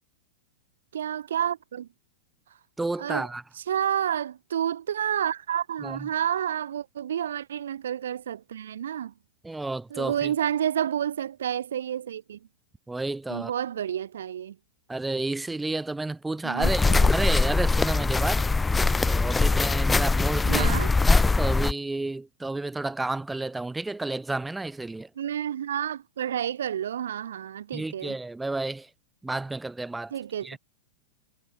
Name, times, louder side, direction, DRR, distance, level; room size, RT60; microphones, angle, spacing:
voice 1, 0.9-1.9 3.0-3.3 3.6-9.1 9.9-12.4 13.3-14.6 16.4-17.1 20.5-20.9 25.2-28.1 30.1-30.6, right 9 dB, 85° right, 0.5 m, -30 dB
voice 2, 2.8-3.4 5.8-6.1 9.4-10.3 12.9-13.5 14.9-18.5 19.1-20.7 21.1-25.1 27.7-28.9 29.2-30.1 30.4-30.6, right 2 dB, 5° right, 2.7 m, -31 dB
sound 1, 16.6-21.7, left 3 dB, 10° left, 0.6 m, -22 dB
hypercardioid pair, 130°, 0 cm